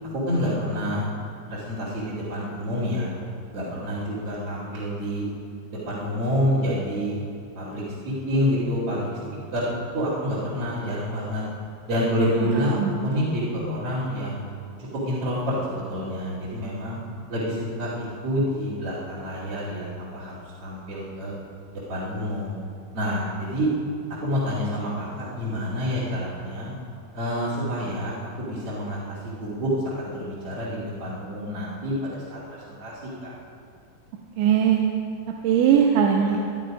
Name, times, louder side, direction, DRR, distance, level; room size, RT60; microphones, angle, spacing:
voice 1, 0.1-1.1 1.5-3.1 3.5-5.3 5.7-7.2 7.5-9.1 9.5-11.4 11.9-14.4 14.8-17.0 17.3-20.3 20.6-21.3 21.7-22.5 22.9-23.7 24.2-26.7 27.1-33.3, equal, 40° right, -11 dB, 3.2 m, -28 dB
voice 2, 12.2-12.9 34.4-34.8 35.4-36.4, right 8 dB, 85° right, 1 dB, 3.2 m, -20 dB
22.5 x 11.0 x 5.1 m, 2.4 s
omnidirectional pair, 5.3 m